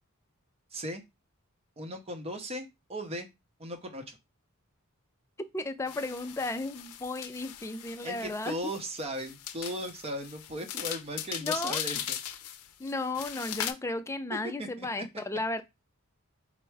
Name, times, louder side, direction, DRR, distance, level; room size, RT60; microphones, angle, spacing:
voice 1, 0.7-1.0 1.8-3.3 3.6-4.2 8.0-12.2 14.3-14.9, equal, 30° right, 0.7 m, -37 dB
voice 2, 5.5-8.5 11.4-11.8 12.8-15.6, left 2 dB, 15° left, 0.4 m, -34 dB
sound 1, 5.9-13.7, left 10 dB, 85° left, 0.5 m, -39 dB
4.5 x 2.1 x 4.5 m
head